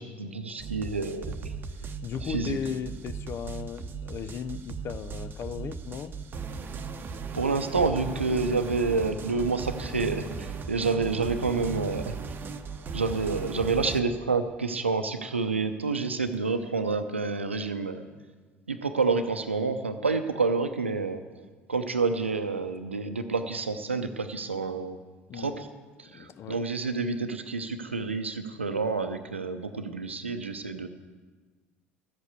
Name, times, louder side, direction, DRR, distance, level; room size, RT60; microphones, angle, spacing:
voice 1, 0.0-1.6 2.2-2.6 7.3-12.2 12.9-18.1 18.7-21.2 21.7-25.0 25.3-25.7 26.0-30.9, right 4 dB, 85° right, 9 dB, 0.7 m, -28 dB
sound 1, 0.6-14.0, right 4 dB, 35° right, 0.9 m, -37 dB
voice 2, 1.8-6.1 13.1-13.2 25.3-25.7 26.1-26.6, left 7 dB, 45° left, 14 dB, 0.7 m, -36 dB
13.5 x 8.2 x 8.2 m, 1.4 s
figure-of-eight pair, 60°, 6 cm